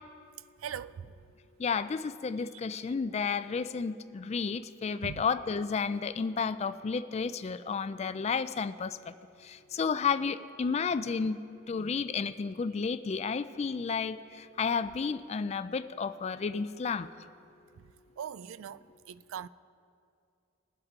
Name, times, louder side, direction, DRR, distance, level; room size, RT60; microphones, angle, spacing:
voice 1, 0.6-1.1 5.0-5.3 11.2-11.3 11.8-12.0 17.8-17.9 18.2-19.5, right 8 dB, 85° right, 0.3 m, -41 dB
voice 2, 1.6-9.0 9.5-11.4 11.7-17.1, left 5 dB, 30° left, 0.3 m, -32 dB
21.0 x 7.9 x 3.7 m
head